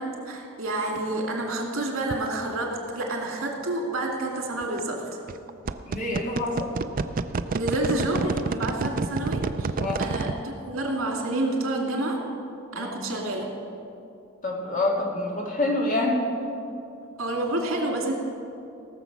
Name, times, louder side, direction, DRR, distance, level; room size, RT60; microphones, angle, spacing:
voice 1, 0.0-5.0 7.5-9.7 10.0-12.2 12.7-13.5 17.2-18.1, right 1 dB, 85° right, 0 dB, 2.5 m, -29 dB
sound 1, 2.1-2.3 4.6-4.8 5.3-10.4, right 4 dB, 45° right, 0.4 m, -28 dB
voice 2, 5.8-6.8 9.8-10.0 12.7-12.9 14.4-16.2, left 2 dB, 40° left, -2 dB, 2.3 m, -27 dB
18.0 x 7.0 x 6.1 m, 2.7 s
head